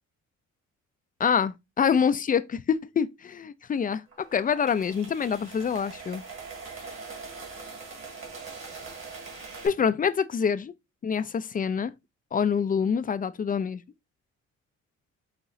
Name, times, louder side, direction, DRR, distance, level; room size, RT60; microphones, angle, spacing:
voice 1, 1.2-6.2 9.6-10.7 11.0-11.9 12.3-13.8, left 7 dB, 30° left, 0.4 m, -26 dB
sound 1, 4.1-9.7, right 4 dB, 45° right, 1.9 m, -42 dB
5.7 x 2.9 x 2.6 m
cardioid pair, 90°, 30 cm